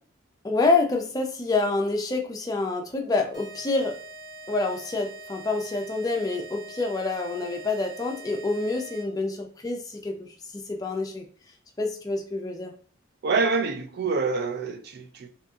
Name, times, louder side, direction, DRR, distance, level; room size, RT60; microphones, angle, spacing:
voice 1, 0.4-3.9 4.5-10.3 10.7-11.2 11.8-12.7, left 3 dB, 20° left, 0.4 m, -27 dB
sound 1, 3.3-9.3, right 2 dB, 20° right, 0.9 m, -44 dB
voice 2, 13.2-15.3, right 4 dB, 50° right, 0.4 m, -26 dB
2.7 x 2.6 x 2.3 m
head